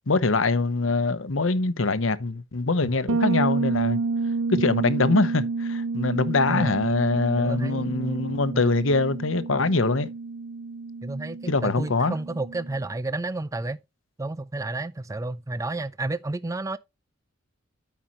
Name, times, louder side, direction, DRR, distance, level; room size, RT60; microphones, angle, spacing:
voice 1, 0.1-4.0 4.5-10.1 11.5-12.2, left 3 dB, 85° left, 0.9 m, -23 dB
Bass guitar, 3.1-12.7, right 4 dB, 90° right, 0.5 m, -30 dB
voice 2, 6.5-6.8 7.4-8.6 11.0-13.8 14.2-16.8, right 2 dB, 15° right, 0.4 m, -31 dB
12.5 x 5.7 x 3.0 m
head